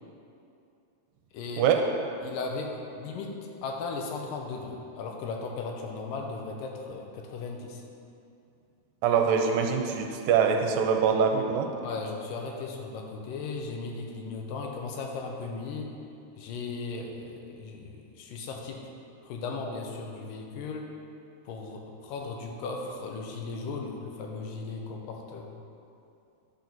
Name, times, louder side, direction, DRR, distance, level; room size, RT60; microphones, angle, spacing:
voice 1, 1.3-1.7 2.2-7.8 11.8-15.9 16.4-18.8 19.2-20.9 21.5-25.5, left 4 dB, 80° left, 1 dB, 2.3 m, -37 dB
voice 2, 9.0-11.7, right 6 dB, 85° right, 3 dB, 2.4 m, -24 dB
10.0 x 3.9 x 5.9 m, 2.6 s
omnidirectional pair, 4.0 m